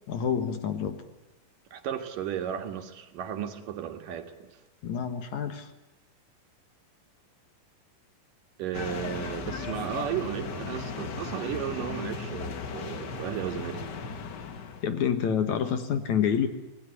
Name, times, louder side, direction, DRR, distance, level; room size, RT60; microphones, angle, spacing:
voice 1, 0.1-1.0 4.8-5.7 14.8-16.5, left 8 dB, 60° left, 9 dB, 2.6 m, -27 dB
voice 2, 1.7-4.5 8.6-13.9, right 10 dB, 70° right, 6 dB, 3.2 m, -34 dB
sound 1, 8.7-14.9, left 5 dB, 80° left, 0.9 m, -36 dB
26.0 x 19.0 x 9.8 m, 1.0 s
omnidirectional pair, 4.2 m